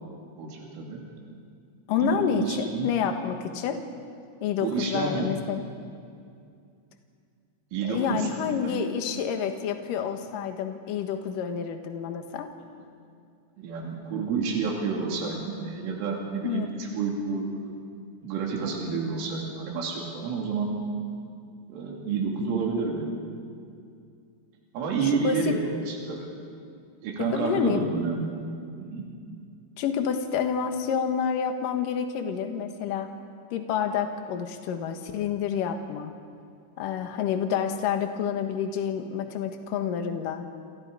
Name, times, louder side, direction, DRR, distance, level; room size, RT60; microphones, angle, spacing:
voice 1, 0.4-1.0 2.0-2.9 4.6-5.3 7.7-8.3 8.6-8.8 13.6-17.8 18.2-20.7 21.7-23.1 24.7-26.3 27.0-28.3 28.8-29.0, right 5 dB, 85° right, -1 dB, 5.1 m, -29 dB
voice 2, 1.9-3.8 4.4-5.7 7.8-12.5 16.4-16.7 25.0-25.6 27.3-27.8 29.8-33.1 33.5-36.1 36.8-40.5, left 7 dB, 65° left, 6 dB, 2.4 m, -28 dB
28.5 x 27.0 x 5.0 m, 2.3 s
omnidirectional pair, 5.6 m